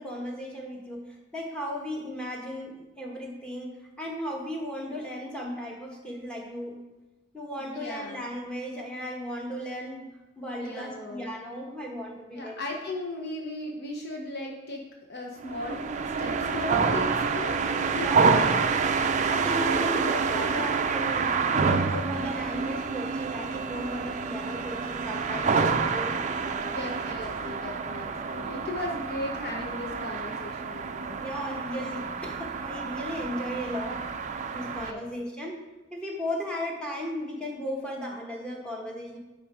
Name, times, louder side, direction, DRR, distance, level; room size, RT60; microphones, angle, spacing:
voice 1, 0.0-6.8 7.3-10.1 10.4-12.6 17.9-18.4 19.3-26.7 31.2-34.1 34.5-35.6 35.9-39.2, equal, 5° left, -1 dB, 1.2 m, -36 dB
voice 2, 7.6-8.3 10.6-11.3 12.3-18.6 19.6-20.4 25.4-25.5 26.7-31.2 34.7-35.0, left 2 dB, 55° left, 0 dB, 0.9 m, -37 dB
sound 1, 15.4-34.9, right 5 dB, 40° right, 0.4 m, -28 dB
9.8 x 3.8 x 4.8 m, 1.1 s
head